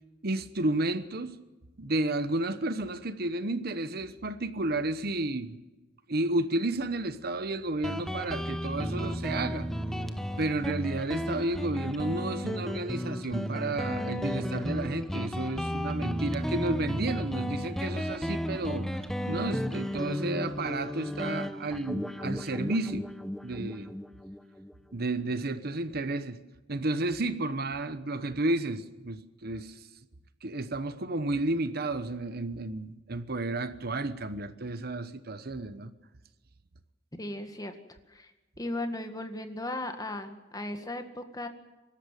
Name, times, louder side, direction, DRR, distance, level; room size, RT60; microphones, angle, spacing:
voice 1, 0.2-1.4 1.8-5.6 6.1-9.7 10.4-23.1 23.4-23.9 24.9-26.4 26.7-29.9 30.4-35.9, right 2 dB, 55° right, 1.0 m, -32 dB
Guitar, 7.8-25.0, equal, ahead, 0.9 m, -33 dB
voice 2, 37.2-37.7 38.1-38.3 38.6-41.5, left 1 dB, 20° left, 1.8 m, -36 dB
24.5 x 13.5 x 9.3 m
head